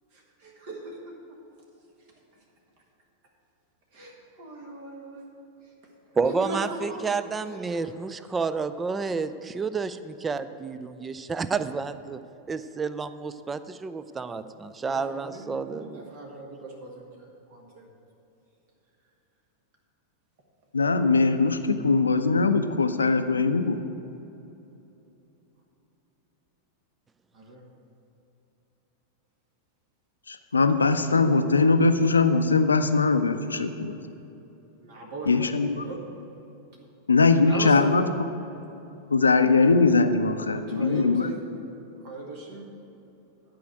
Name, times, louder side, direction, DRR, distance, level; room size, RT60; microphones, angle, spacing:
voice 1, 0.1-1.4 2.3-2.4 3.9-5.3 5.6-5.7 6.2-7.0 7.4-7.9 14.1-14.3 14.8-17.9 27.3-27.7 33.9-34.2 34.8-36.0 37.1-38.1 40.4-42.7, right 2 dB, 50° right, 0 dB, 1.6 m, -39 dB
voice 2, 6.2-12.2 12.5-16.0, right 4 dB, 15° right, 13 dB, 0.4 m, -30 dB
voice 3, 20.7-23.8 30.3-34.0 35.3-35.9 37.1-38.1 39.1-41.3, left 4 dB, 75° left, 9 dB, 0.5 m, -21 dB
11.5 x 5.0 x 7.7 m, 3.0 s
figure-of-eight pair, 90°, 0 cm